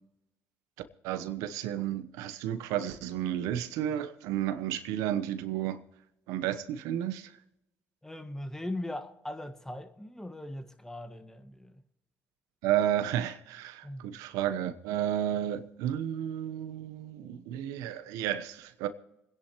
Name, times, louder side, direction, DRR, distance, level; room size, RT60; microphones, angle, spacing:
voice 1, 1.0-5.8 6.3-7.3 12.6-18.9, right 11 dB, 80° right, 1.0 m, -32 dB
voice 2, 8.0-11.7 13.8-14.1, left 1 dB, 10° left, 1.7 m, -39 dB
27.0 x 10.5 x 3.1 m
supercardioid pair, 70°, 6 cm